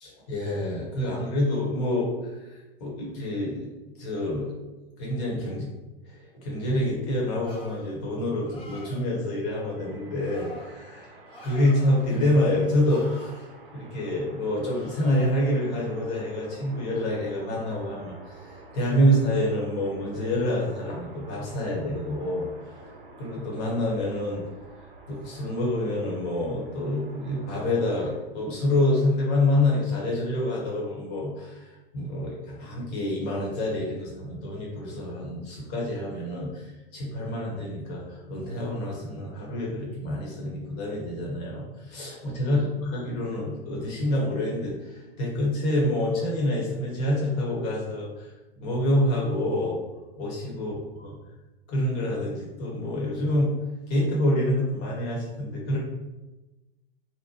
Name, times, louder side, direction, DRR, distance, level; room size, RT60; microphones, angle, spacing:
voice 1, 0.0-3.7 4.0-4.5 5.0-5.7 6.0-11.1 11.4-13.5 13.7-22.5 23.2-24.4 25.1-48.3 48.5-49.8 50.2-50.7 51.0-51.1 51.7-53.6 53.9-55.8, left 1 dB, 35° left, -3 dB, 1.0 m, -27 dB
sound 1, 7.4-7.9 8.4-9.1 10.2-10.7 11.3-12.1 12.8-13.3 14.7-15.2, left 1 dB, 15° left, 0.6 m, -46 dB
sound 2, 9.8-28.2, right 2 dB, 65° right, 0.6 m, -49 dB
2.8 x 2.1 x 2.8 m, 1.1 s
figure-of-eight pair, 105°, 30 cm